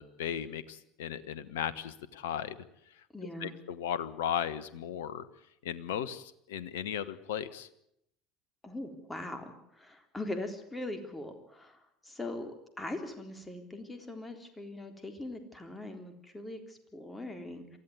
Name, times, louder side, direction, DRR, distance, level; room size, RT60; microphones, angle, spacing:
voice 1, 0.0-2.6 3.4-5.2 5.6-7.7, left 9 dB, 70° left, 17 dB, 1.2 m, -36 dB
voice 2, 3.1-3.6 8.6-17.8, left 1 dB, 15° left, 6 dB, 3.6 m, -41 dB
23.5 x 15.0 x 9.5 m, 0.76 s
figure-of-eight pair, 65°, 0 cm